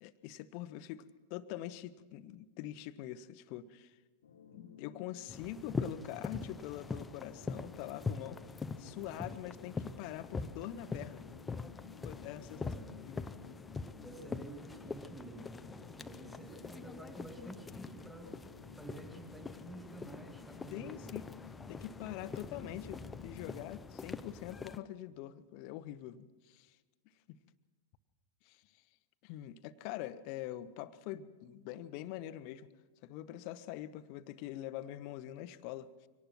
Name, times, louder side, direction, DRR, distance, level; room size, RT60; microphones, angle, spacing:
voice 1, 0.0-4.0 4.5-8.4 8.8-11.2 12.0-12.7 13.0-13.3 20.7-21.3 21.7-26.8 27.3-27.4 28.4-28.8 29.2-32.7 33.0-36.1, left 13 dB, 45° left, 14 dB, 0.9 m, -44 dB
sound 1, 4.2-23.8, left 6 dB, 65° left, 1.2 m, -55 dB
sound 2, 5.3-24.8, left 4 dB, 15° left, 0.7 m, -44 dB
voice 2, 12.6-13.0 14.0-18.3 18.7-21.1, right 2 dB, 5° right, 2 dB, 2.7 m, -51 dB
24.0 x 18.5 x 6.0 m, 1.3 s
figure-of-eight pair, 90°, 0 cm